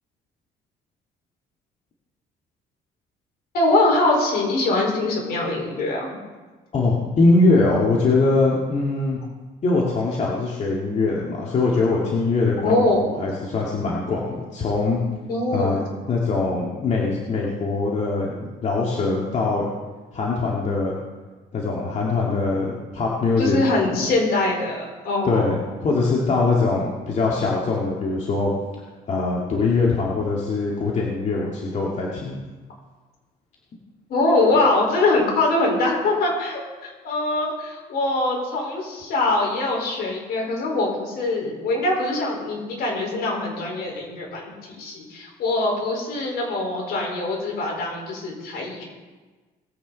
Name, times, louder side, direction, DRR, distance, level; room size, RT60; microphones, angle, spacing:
voice 1, 3.5-6.1 12.6-13.1 15.3-15.8 23.4-25.5 34.1-48.8, left 2 dB, 65° left, -1 dB, 4.7 m, -23 dB
voice 2, 6.7-9.2 9.6-15.0 15.5-15.8 16.1-18.3 18.6-19.7 20.1-21.0 21.5-23.6 25.2-28.5 29.1-32.4, left 3 dB, 40° left, -3 dB, 2.3 m, -22 dB
20.0 x 8.6 x 4.1 m, 1.3 s
cardioid pair, 110°, 17 cm